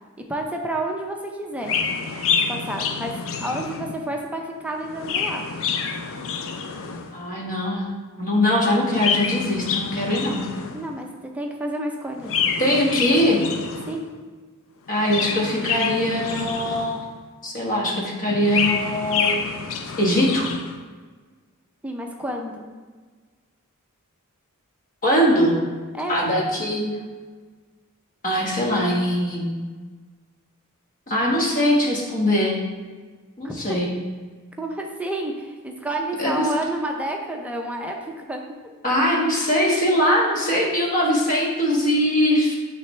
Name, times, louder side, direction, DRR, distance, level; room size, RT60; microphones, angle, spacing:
voice 1, 0.3-1.8 2.5-3.1 3.4-5.5 10.7-12.3 13.9-14.0 21.8-22.7 25.9-26.2 33.4-33.8 34.6-38.4, right 1 dB, 5° right, 1 dB, 0.5 m, -30 dB
Chirp tweet, 1.6-4.1 4.8-7.2 8.8-10.9 12.2-14.1 14.9-17.2 18.2-20.8, left 6 dB, 65° left, 0.5 m, -27 dB
voice 2, 7.1-7.9 8.2-10.4 12.6-13.4 14.9-17.0 17.4-19.5 20.0-20.5 25.0-25.6 26.1-26.9 28.2-29.5 31.1-32.6 33.4-33.9 36.2-36.5 38.8-42.5, equal, 40° left, -3 dB, 1.4 m, -21 dB
9.3 x 3.4 x 3.2 m, 1.4 s
head